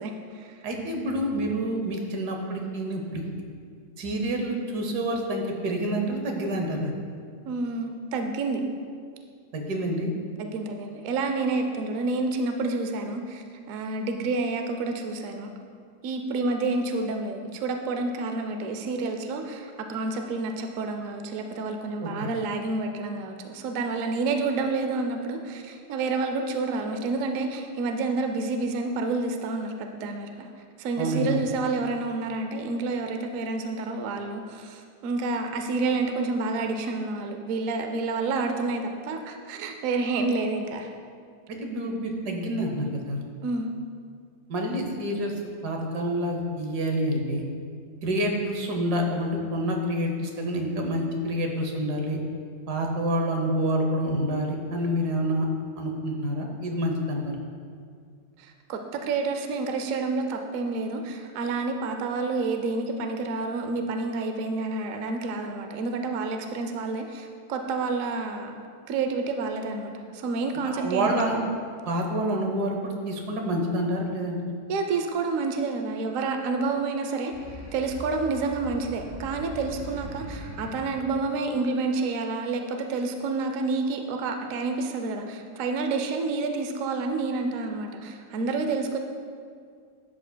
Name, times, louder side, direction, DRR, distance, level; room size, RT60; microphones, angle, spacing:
voice 1, 0.0-0.6 7.4-8.6 10.4-15.5 16.0-30.5 30.8-40.9 43.4-43.7 58.4-68.6 68.9-71.4 74.7-77.3 77.7-89.0, right 3 dB, 65° right, 5 dB, 0.9 m, -29 dB
voice 2, 0.6-3.2 4.0-6.9 9.5-10.1 22.0-22.3 31.0-31.4 41.5-43.2 44.5-45.3 45.6-47.4 48.0-52.2 52.7-55.5 55.8-57.3 70.6-71.4 71.8-74.4, equal, 85° right, 2 dB, 1.5 m, -28 dB
sound 1, 77.3-82.3, left 1 dB, 30° right, 1.8 m, -41 dB
11.5 x 7.6 x 2.2 m, 2.2 s
omnidirectional pair, 1.7 m